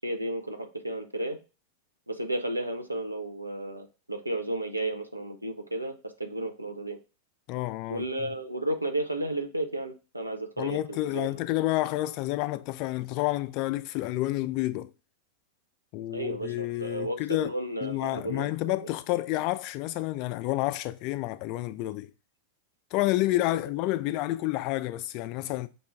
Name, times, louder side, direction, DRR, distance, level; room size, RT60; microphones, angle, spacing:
voice 1, 0.0-1.4 2.1-7.0 7.9-11.3 16.1-18.5 18.8-18.9, right 1 dB, 85° right, 0.5 m, -33 dB
voice 2, 7.5-8.0 10.6-14.9 15.9-17.5 17.8-22.1 22.9-25.7, left 17 dB, 45° left, 0.3 m, -29 dB
5.3 x 2.2 x 3.2 m
figure-of-eight pair, 90°, 0 cm